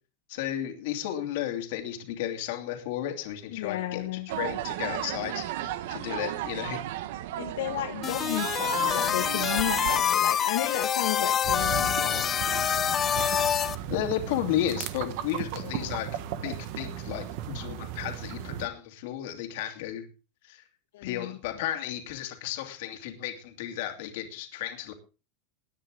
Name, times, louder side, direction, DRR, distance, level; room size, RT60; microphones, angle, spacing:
voice 1, 0.3-6.8 13.9-16.1 16.4-20.0 20.4-20.6 21.0-24.9, left 12 dB, 60° left, 5 dB, 2.7 m, -33 dB
voice 2, 3.5-4.4 5.6-5.7 7.4-12.3 15.6-16.0 20.9-21.4, left 13 dB, 85° left, 2 dB, 1.7 m, -33 dB
sound 1, 4.3-10.0, right 13 dB, 65° right, 1.0 m, -34 dB
sound 2, 8.0-13.7, left 8 dB, 20° left, 0.6 m, -26 dB
sound 3, 11.4-18.7, right 10 dB, 50° right, 1.3 m, -36 dB
19.5 x 9.6 x 3.7 m, 0.34 s
supercardioid pair, 170°, 0 cm